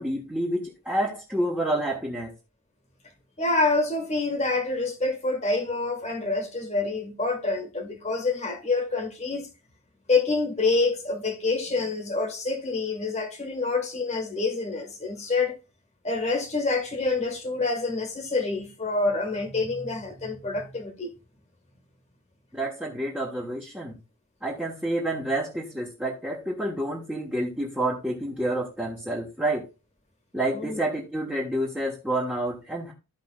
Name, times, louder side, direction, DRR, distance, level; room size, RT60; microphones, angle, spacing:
voice 1, 0.0-2.3 22.5-24.0 24.4-29.7 30.3-32.9, right 1 dB, 5° right, 1.4 m, -29 dB
voice 2, 3.4-9.5 10.1-15.6 16.0-21.1 30.6-30.8, left 3 dB, 30° left, 1.8 m, -27 dB
15.0 x 5.1 x 2.4 m
head